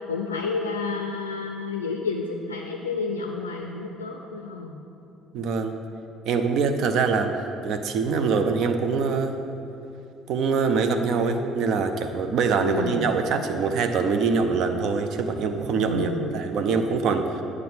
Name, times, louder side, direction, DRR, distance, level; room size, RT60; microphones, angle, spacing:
voice 1, 0.1-4.7 12.6-13.1 15.8-16.3, left 4 dB, 85° left, 2 dB, 0.4 m, -30 dB
voice 2, 5.3-5.7 6.3-7.3 7.6-9.4 10.3-17.4, right 5 dB, 55° right, 7 dB, 0.5 m, -24 dB
9.1 x 4.7 x 5.6 m, 2.7 s
figure-of-eight pair, 50°, 0 cm